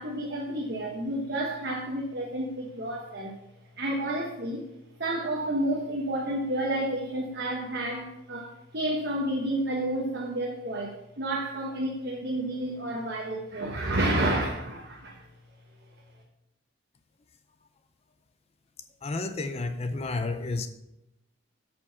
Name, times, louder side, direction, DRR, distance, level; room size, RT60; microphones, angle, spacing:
voice 1, 0.0-3.4 3.8-4.7 5.0-15.3, right 1 dB, 55° right, 0 dB, 1.1 m, -30 dB
voice 2, 19.0-20.7, left 3 dB, 30° left, 9 dB, 0.5 m, -31 dB
8.5 x 5.2 x 5.6 m, 0.85 s
head